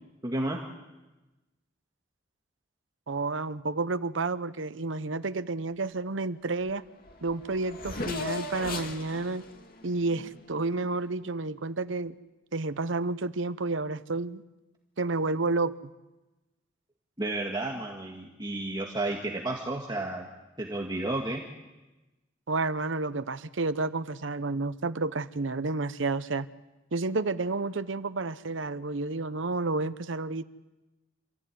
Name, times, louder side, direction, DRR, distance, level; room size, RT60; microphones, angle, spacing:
voice 1, 0.2-0.6 17.2-20.3 20.6-21.4, right 2 dB, 20° right, 0 dB, 1.9 m, -32 dB
voice 2, 3.1-6.8 7.2-9.4 9.8-12.1 12.5-14.4 15.0-15.9 22.5-26.5 26.9-30.4, right 3 dB, 75° right, 14 dB, 0.8 m, -30 dB
Race car auto racing / Accelerating revving vroom, 6.7-6.8 7.0-11.0, left 3 dB, 50° left, 2.4 m, -38 dB
27.5 x 15.0 x 9.4 m, 1.1 s
head